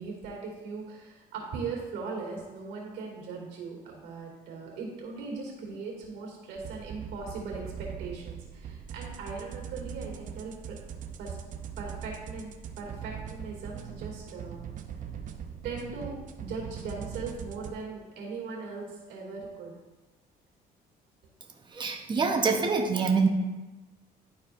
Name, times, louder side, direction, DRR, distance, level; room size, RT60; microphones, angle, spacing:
voice 1, 0.0-10.8 11.2-11.4 11.8-14.6 15.6-19.8, right 4 dB, 85° right, -1 dB, 2.3 m, -39 dB
sound 1, 6.6-17.7, right 8 dB, 50° right, 0.6 m, -41 dB
voice 2, 21.7-23.3, right 4 dB, 25° right, 3 dB, 0.9 m, -25 dB
11.5 x 4.4 x 2.5 m, 1.2 s
cardioid pair, 110°, 17 cm